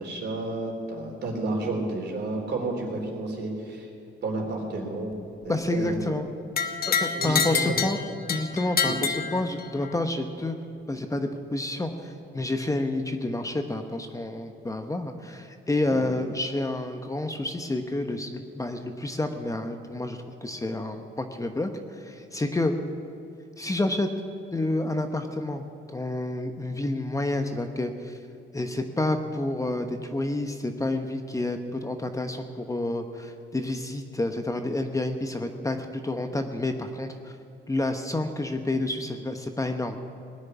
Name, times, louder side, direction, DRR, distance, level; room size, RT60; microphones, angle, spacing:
voice 1, 0.0-3.9 4.2-5.1 5.4-6.0 7.1-7.6 8.9-9.0 15.9-16.0, right 2 dB, 60° right, 0 dB, 3.5 m, -31 dB
voice 2, 5.5-6.3 6.8-8.0 8.3-10.6 10.9-22.8 23.6-24.1 24.5-28.2 28.5-37.4 37.7-40.0, left 2 dB, 15° left, 6 dB, 1.0 m, -29 dB
sound 1, 6.6-9.9, left 6 dB, 50° left, 1.1 m, -27 dB
19.0 x 6.5 x 10.0 m, 2.5 s
cardioid pair, 90°, 20 cm